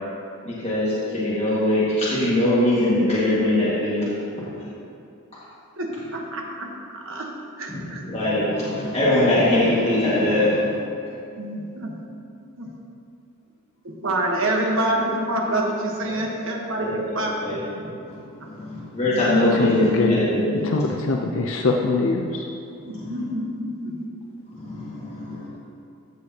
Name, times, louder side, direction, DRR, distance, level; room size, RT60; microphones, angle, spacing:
voice 1, 0.4-4.1 7.7-10.7 16.0-16.2 16.8-17.0 17.4-20.9 22.8-23.2 24.5-25.5, left 1 dB, 25° left, -11 dB, 1.7 m, -22 dB
voice 2, 5.8-6.7 6.9-7.3 7.6-8.0 11.4-11.9 12.6-12.7 13.8-17.3 22.9-24.0, right 1 dB, 60° right, 0 dB, 1.2 m, -26 dB
voice 3, 19.5-20.2 20.5-22.4, left 3 dB, 65° left, 2 dB, 0.5 m, -23 dB
14.5 x 6.6 x 2.8 m, 2.6 s
head